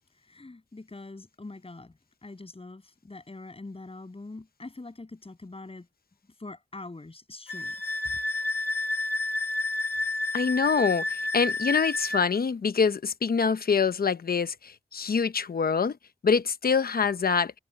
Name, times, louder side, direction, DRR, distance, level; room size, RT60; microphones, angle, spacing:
voice 1, 0.2-5.9 6.4-7.8, left 2 dB, 35° left, 7.3 m, -43 dB
Wind instrument woodwind instrument, 7.5-12.2, left 2 dB, 90° left, 2.1 m, -30 dB
voice 2, 10.3-16.0 16.2-17.5, left 5 dB, 70° left, 0.8 m, -25 dB
wide cardioid pair, 85°, 16 cm